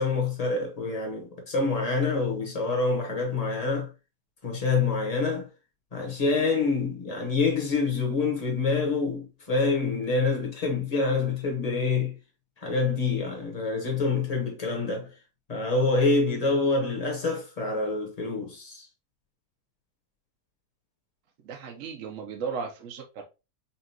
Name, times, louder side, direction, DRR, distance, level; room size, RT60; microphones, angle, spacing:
voice 1, 0.0-3.9 4.4-5.5 5.9-12.1 12.6-15.1 15.5-18.9, left 3 dB, 25° left, 1.1 m, -26 dB
voice 2, 21.4-23.2, right 6 dB, 60° right, 0.9 m, -35 dB
5.6 x 2.5 x 2.8 m
omnidirectional pair, 1.8 m